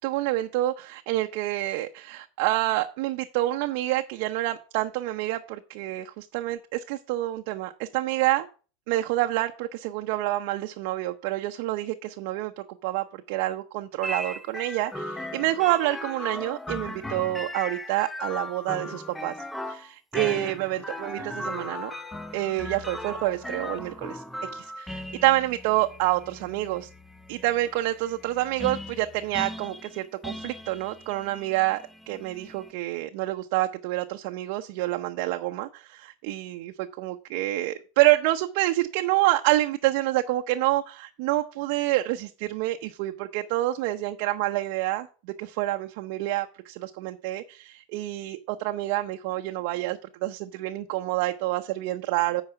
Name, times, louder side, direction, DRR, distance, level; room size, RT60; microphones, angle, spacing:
voice 1, 0.0-8.5 8.9-19.3 19.7-21.9 22.3-24.2 24.5-26.9 27.3-52.4, right 16 dB, 65° right, 0.6 m, -28 dB
sound 1, 14.0-32.7, left 1 dB, 5° left, 0.7 m, -38 dB
9.0 x 4.9 x 6.6 m
supercardioid pair, 115°, 0 cm